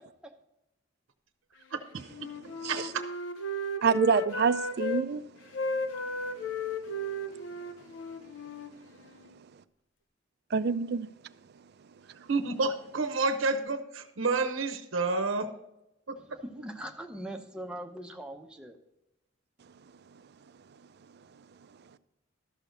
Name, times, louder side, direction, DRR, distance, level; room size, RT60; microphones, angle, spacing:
voice 1, 1.9-2.9 3.8-5.3 5.6-9.1 9.3-9.6 10.5-11.6 12.1-12.2 19.6-20.2 21.3-21.8, right 6 dB, 55° right, 0.4 m, -32 dB
Wind instrument woodwind instrument, 2.1-5.0 5.5-9.4, left 2 dB, 70° left, 0.8 m, -35 dB
voice 2, 2.7-3.0 12.3-15.5, right 3 dB, 90° right, 0.8 m, -29 dB
voice 3, 16.2-18.8, right 1 dB, 5° right, 0.7 m, -41 dB
12.5 x 6.4 x 3.9 m
head